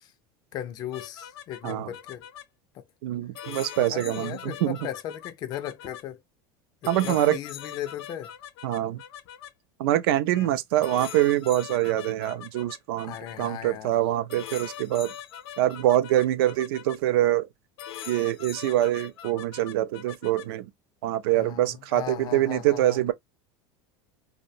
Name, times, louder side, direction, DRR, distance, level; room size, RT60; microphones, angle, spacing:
voice 1, 0.5-2.3 2.7-2.8 3.9-6.2 6.8-8.3 10.4-10.5 13.0-13.9 21.3-23.0, left 11 dB, 30° left, 0.3 m, -37 dB
sound 1, 0.9-2.4 3.3-6.0 6.8-9.5 10.3-10.5 10.8-13.5 14.3-17.0 17.8-20.4, left 10 dB, 85° left, 0.5 m, -42 dB
voice 2, 3.0-4.8 6.9-7.4 8.6-9.0 9.8-15.1 15.6-17.5 18.1-20.7 21.0-23.1, right 14 dB, 80° right, 0.4 m, -25 dB
2.5 x 2.0 x 2.7 m
supercardioid pair, 165°, 13 cm